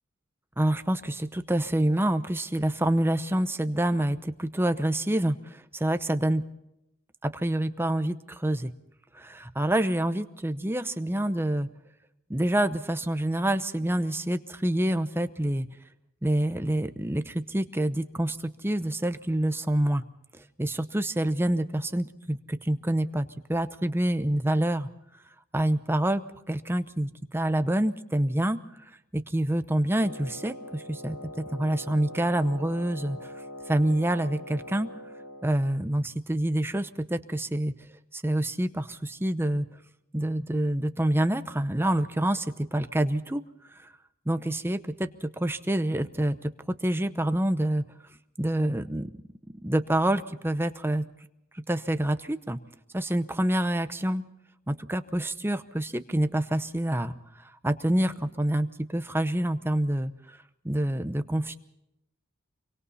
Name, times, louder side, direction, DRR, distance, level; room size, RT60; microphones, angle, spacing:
voice 1, 0.6-6.4 7.2-8.7 9.1-11.7 12.3-15.7 16.2-20.0 20.6-24.9 25.5-28.6 29.1-33.3 33.7-34.9 35.4-37.7 38.1-39.7 40.1-43.4 43.8-43.9 44.3-47.8 48.4-49.1 49.6-51.0 51.7-52.6 52.9-54.2 54.7-57.2 57.6-60.1 60.6-61.6, right 1 dB, 10° right, 10 dB, 0.8 m, -27 dB
Wind instrument woodwind instrument, 29.9-35.6, left 1 dB, 75° left, 3.0 m, -42 dB
26.0 x 24.0 x 4.2 m, 0.83 s
head